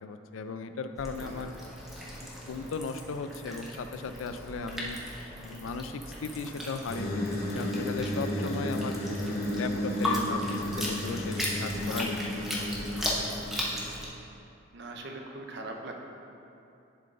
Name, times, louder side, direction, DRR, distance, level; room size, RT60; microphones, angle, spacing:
voice 1, 0.0-1.5 2.2-5.0 5.4-9.0 9.5-12.2 12.5-12.6, left 4 dB, 85° left, 9 dB, 0.4 m, -37 dB
sound 1, 1.0-14.1, left 1 dB, ahead, 0.8 m, -37 dB
sound 2, 6.9-13.6, left 1 dB, 50° left, 0.8 m, -33 dB
voice 2, 13.8-14.2 14.7-16.0, right 2 dB, 55° right, 2 dB, 0.7 m, -43 dB
11.0 x 3.8 x 3.7 m, 2.7 s
head